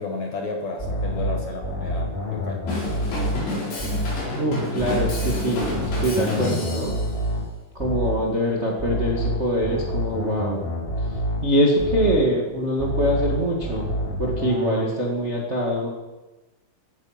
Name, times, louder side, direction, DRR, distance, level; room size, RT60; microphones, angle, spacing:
voice 1, 0.0-2.7, left 3 dB, 60° left, 2 dB, 2.0 m, -32 dB
sound 1, 0.8-4.3 4.8-8.3 8.8-12.3 12.8-14.8, equal, 15° left, 3.6 m, -28 dB
Drum kit / Drum, 2.7-7.1, left 2 dB, 80° left, 6.9 m, -29 dB
voice 2, 4.4-7.0 7.7-10.6 11.4-13.9 14.2-15.9, equal, 70° right, -3 dB, 0.6 m, -23 dB
15.5 x 9.0 x 5.8 m, 1.1 s
omnidirectional pair, 4.7 m